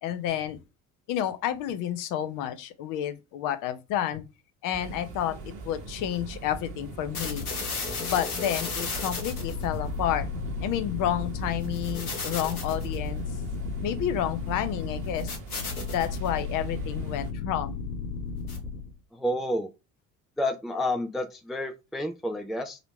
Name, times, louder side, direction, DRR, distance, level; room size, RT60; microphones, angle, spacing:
voice 1, 0.0-0.6 1.1-4.2 4.6-7.4 8.0-10.3 10.6-13.2 13.8-15.3 15.9-17.9, left 10 dB, 45° left, 0.8 m, -30 dB
sound 1, 4.7-17.3, right 3 dB, 45° right, 1.2 m, -41 dB
sound 2, 7.1-18.9, left 4 dB, 85° left, 1.0 m, -33 dB
voice 2, 19.2-19.7 20.4-22.8, left 1 dB, ahead, 0.4 m, -29 dB
4.1 x 2.9 x 4.2 m
figure-of-eight pair, 60°, 44 cm